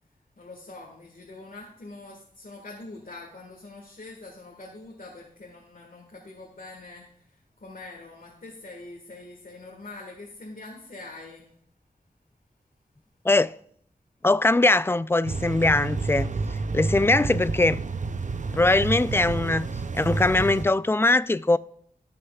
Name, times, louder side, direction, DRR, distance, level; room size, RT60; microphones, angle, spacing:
voice 1, 0.4-11.5, left 2 dB, 70° left, 1.7 m, -44 dB
voice 2, 14.2-16.3 16.7-17.8 18.5-19.7 19.9-21.6, left 2 dB, 15° left, 0.3 m, -21 dB
sound 1, 15.2-20.6, right 3 dB, 55° right, 0.6 m, -29 dB
16.5 x 6.6 x 2.4 m
wide cardioid pair, 55°, 15 cm